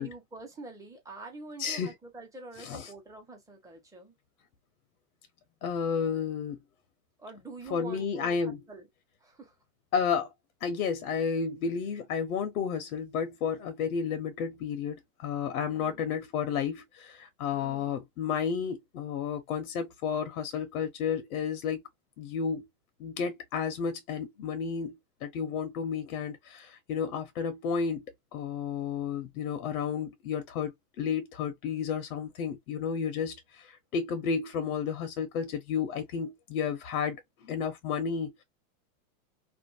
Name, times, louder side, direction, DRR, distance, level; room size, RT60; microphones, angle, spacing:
voice 1, 0.0-4.1 7.2-8.4 8.7-8.9 9.2-9.5 15.7-16.0 17.5-18.0, right 3 dB, 10° right, 1.0 m, -46 dB
voice 2, 1.6-1.9 2.6-2.9 5.6-6.6 7.7-8.6 9.9-10.3 10.6-21.8 22.2-22.7 23.0-28.0 28.3-38.4, left 6 dB, 80° left, 0.9 m, -32 dB
2.6 x 2.5 x 2.4 m
supercardioid pair, 125°, 43 cm